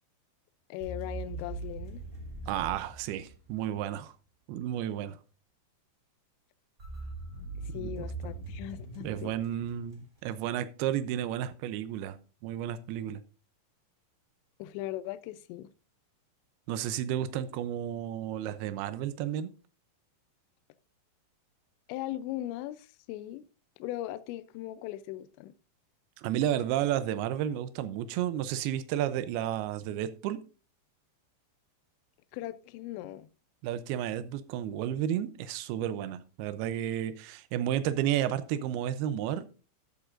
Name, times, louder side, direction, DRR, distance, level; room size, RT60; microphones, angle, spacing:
voice 1, 0.7-2.0 7.7-9.3 14.6-15.7 21.9-23.4 23.8-25.5 32.3-33.3, left 14 dB, 80° left, 2.8 m, -39 dB
sound 1, 0.8-3.8 6.8-10.2, right 2 dB, 20° right, 2.9 m, -41 dB
voice 2, 2.5-4.1 4.5-5.2 7.7-8.1 9.0-12.2 12.4-13.2 16.7-19.5 26.2-30.4 33.6-39.5, right 11 dB, 85° right, 2.3 m, -32 dB
14.0 x 8.3 x 2.5 m
omnidirectional pair, 5.3 m